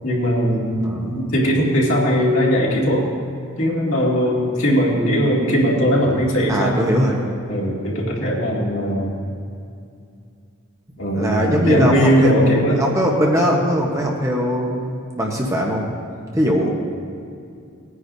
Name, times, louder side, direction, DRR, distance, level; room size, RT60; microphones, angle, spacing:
voice 1, 0.0-3.1 3.6-6.8 7.5-9.1 11.0-12.8, equal, 65° left, -4 dB, 2.4 m, -19 dB
voice 2, 6.5-7.2 11.1-15.9 16.3-16.7, equal, 15° right, -1 dB, 1.0 m, -20 dB
19.5 x 9.7 x 2.7 m, 2.4 s
head